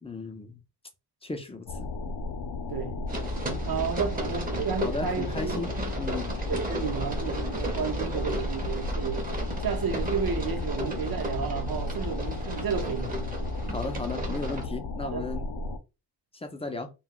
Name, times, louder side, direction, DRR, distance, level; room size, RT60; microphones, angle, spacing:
voice 1, 0.0-0.6 1.2-1.9 4.8-5.7 6.0-6.3 13.7-15.5 16.3-16.9, left 3 dB, 15° left, 0.4 m, -35 dB
sound 1, 1.7-15.8, left 2 dB, 65° left, 0.6 m, -34 dB
sound 2, 3.1-14.6, right 1 dB, 20° right, 0.7 m, -34 dB
voice 2, 3.7-5.9 6.5-9.3 9.6-13.1 15.1-15.3, right 6 dB, 60° right, 0.8 m, -32 dB
2.2 x 2.2 x 3.7 m
wide cardioid pair, 115°, 40 cm